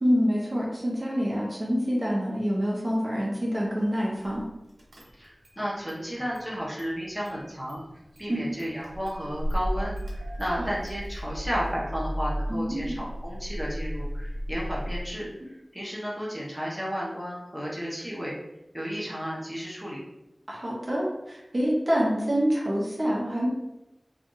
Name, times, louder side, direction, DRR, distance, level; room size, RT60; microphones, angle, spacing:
voice 1, 0.0-4.4 8.3-8.4 10.6-10.7 12.5-13.0 20.5-23.5, equal, 50° right, -4 dB, 0.9 m, -26 dB
Car / Engine starting, 4.2-4.5 4.8-5.6 5.9-6.9 7.2-15.0, equal, 85° right, 0.8 m, -34 dB
voice 2, 5.2-7.8 8.2-18.3 18.7-20.0, equal, ahead, -6 dB, 1.0 m, -33 dB
2.7 x 2.5 x 3.8 m, 0.91 s
wide cardioid pair, 60°, 0 cm